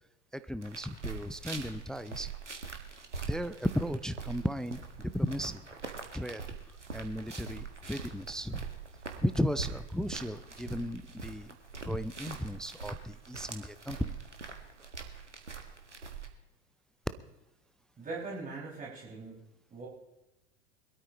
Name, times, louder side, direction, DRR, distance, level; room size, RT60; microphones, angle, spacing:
voice 1, 0.3-2.3 3.3-5.6 6.1-6.4 6.9-8.7 9.2-11.6 11.8-14.1, equal, ahead, 12 dB, 0.4 m, -35 dB
sound 1, 0.6-16.3, right 5 dB, 90° right, 1.7 m, -43 dB
sound 2, 4.0-13.4 13.7-15.0, right 6 dB, 60° right, 4.9 m, -57 dB
voice 2, 18.0-19.4 19.7-19.9, right 3 dB, 25° right, -5 dB, 5.8 m, -41 dB
22.5 x 13.0 x 3.0 m, 0.97 s
figure-of-eight pair, 85°, 34 cm